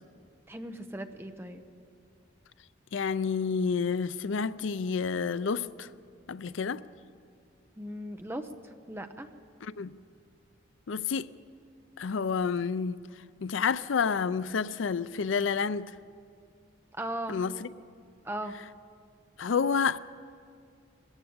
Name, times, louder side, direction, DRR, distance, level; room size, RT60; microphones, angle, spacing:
voice 1, 0.5-1.6 7.8-9.3 16.9-17.4 18.2-18.6, right 1 dB, 10° right, 0.9 m, -38 dB
voice 2, 2.9-5.9 6.3-6.8 9.6-10.0 10.9-11.3 12.0-13.0 13.4-15.9 17.3-17.7 19.4-20.0, left 5 dB, 80° left, 0.5 m, -29 dB
21.0 x 14.5 x 8.7 m
head